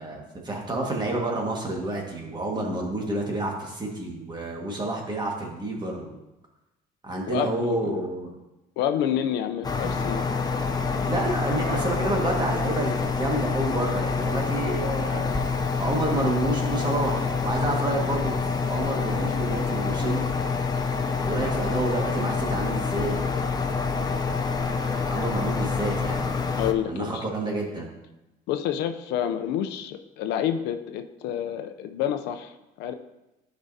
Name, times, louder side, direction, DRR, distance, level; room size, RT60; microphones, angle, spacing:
voice 1, 0.0-6.2 7.0-8.3 11.0-15.3 15.8-18.3 18.7-20.3 21.2-23.4 24.3-24.4 25.1-26.3 26.9-27.9, right 2 dB, 25° right, 0 dB, 1.7 m, -29 dB
voice 2, 7.3-8.0 8.8-10.2 26.6-27.3 28.5-32.9, left 10 dB, 90° left, 8 dB, 0.6 m, -28 dB
sound 1, 9.6-26.7, left 4 dB, 25° left, 0.6 m, -27 dB
12.0 x 5.1 x 2.8 m, 0.98 s
cardioid pair, 110°, 17 cm